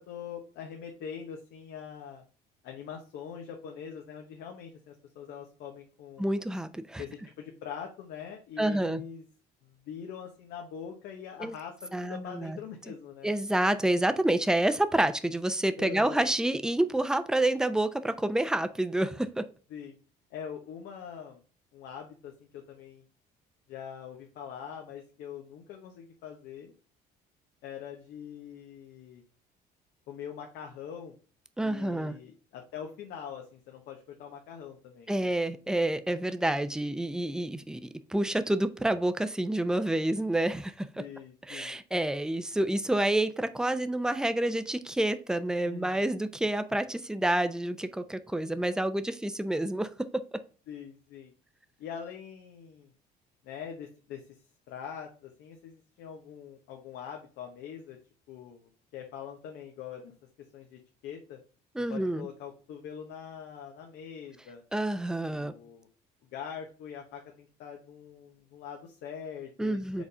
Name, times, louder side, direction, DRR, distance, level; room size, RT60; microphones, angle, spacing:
voice 1, 0.0-2.2 2.6-6.3 7.0-9.2 9.6-13.3 15.8-16.3 19.7-20.0 20.3-21.4 21.7-23.0 23.7-26.7 27.6-29.2 30.1-31.1 31.6-35.3 41.0-41.8 45.6-46.2 50.7-51.3 51.8-52.9 53.4-58.0 58.3-60.1 60.5-61.4 61.9-64.6 65.3-65.9 66.3-70.0, left 8 dB, 80° left, 2 dB, 1.0 m, -43 dB
voice 2, 6.2-7.0 8.6-9.0 11.4-11.5 11.9-12.6 13.2-19.4 31.6-32.2 35.1-40.9 41.5-50.4 61.7-62.3 64.7-65.5 69.6-70.0, right 1 dB, 5° right, 11 dB, 0.6 m, -28 dB
5.0 x 4.1 x 4.9 m, 0.39 s
cardioid pair, 110°, 17 cm